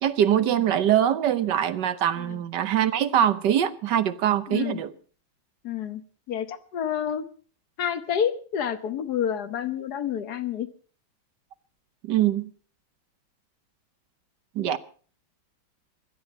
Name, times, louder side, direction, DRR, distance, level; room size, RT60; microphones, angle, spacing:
voice 1, 0.0-4.9 12.0-12.5 14.5-14.8, right 10 dB, 65° right, 1.4 m, -23 dB
voice 2, 4.5-4.8 5.6-6.0 6.3-7.2 7.8-10.7, left 9 dB, 60° left, 1.5 m, -29 dB
16.5 x 12.5 x 5.4 m
omnidirectional pair, 2.1 m